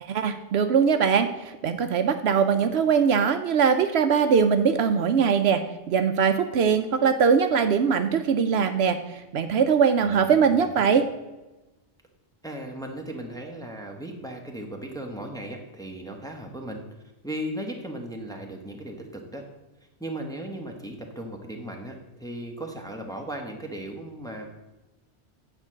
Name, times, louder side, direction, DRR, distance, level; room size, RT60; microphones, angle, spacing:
voice 1, 0.0-11.1, right 6 dB, 70° right, 9 dB, 0.8 m, -22 dB
voice 2, 10.0-10.9 12.4-16.8 17.2-19.4 20.0-24.4, right 1 dB, 5° left, 1 dB, 1.1 m, -36 dB
8.9 x 4.5 x 7.4 m, 1.1 s
omnidirectional pair, 1.2 m